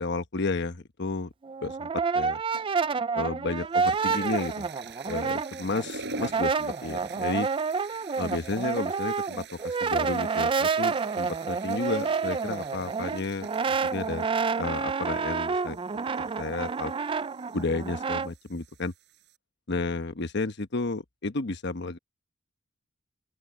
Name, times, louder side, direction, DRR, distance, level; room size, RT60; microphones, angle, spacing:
voice 1, 0.0-1.3 1.6-1.9 2.1-2.4 3.1-4.7 5.1-7.5 8.2-14.3 14.6-15.8 16.4-16.9 17.5-18.9 19.7-22.0, left 3 dB, 60° left, 1.1 m, -32 dB
Brass instrument, 1.4-5.9 6.1-18.3, right 5 dB, 25° right, 0.4 m, -29 dB
sound 1, 2.5-2.9 3.5-19.4, right 4 dB, 60° right, 6.2 m, -46 dB
open air
head